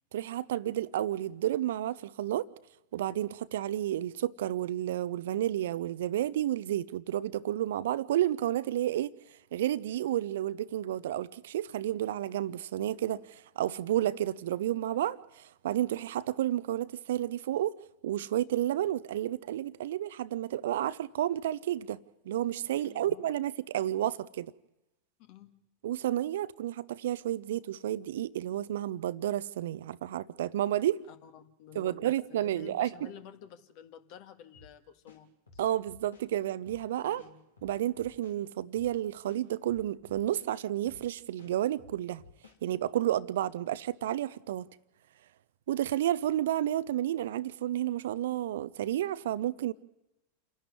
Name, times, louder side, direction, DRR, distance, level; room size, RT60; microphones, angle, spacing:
voice 1, 0.1-2.5 2.9-9.1 9.5-17.8 18.0-24.5 25.8-31.0 31.7-33.1 35.6-37.2 37.6-42.2 42.6-44.7 45.7-49.7, right 12 dB, 60° right, 0.7 m, -31 dB
voice 2, 22.8-23.3 25.2-25.5 31.1-35.6 37.0-37.4, left 9 dB, 45° left, 1.8 m, -51 dB
sound 1, 34.5-34.7 35.1-36.3 36.6-36.8 37.2-38.4 38.8-38.9 39.3-40.5 40.9-41.0 41.4-42.6, left 4 dB, 75° left, 3.2 m, -55 dB
28.5 x 11.0 x 9.7 m
figure-of-eight pair, 90°, 0 cm